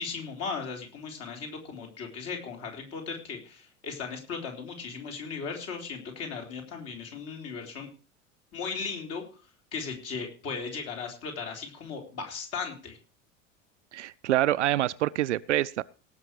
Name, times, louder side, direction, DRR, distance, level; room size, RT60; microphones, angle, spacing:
voice 1, 0.0-7.9 8.5-9.2 9.7-13.0, left 5 dB, 40° left, 3.9 m, -37 dB
voice 2, 13.9-15.8, right 13 dB, 65° right, 0.6 m, -26 dB
18.0 x 6.4 x 4.8 m
figure-of-eight pair, 80°, 38 cm